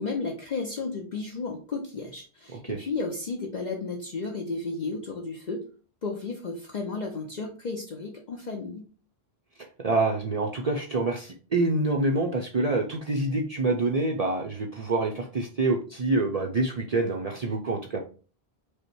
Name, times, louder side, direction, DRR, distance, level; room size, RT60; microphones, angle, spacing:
voice 1, 0.0-5.7 6.0-8.9, left 3 dB, 50° left, 0 dB, 0.8 m, -33 dB
voice 2, 9.8-18.0, right 2 dB, 45° right, 1 dB, 0.6 m, -26 dB
5.3 x 2.1 x 4.5 m, 0.38 s
omnidirectional pair, 1.0 m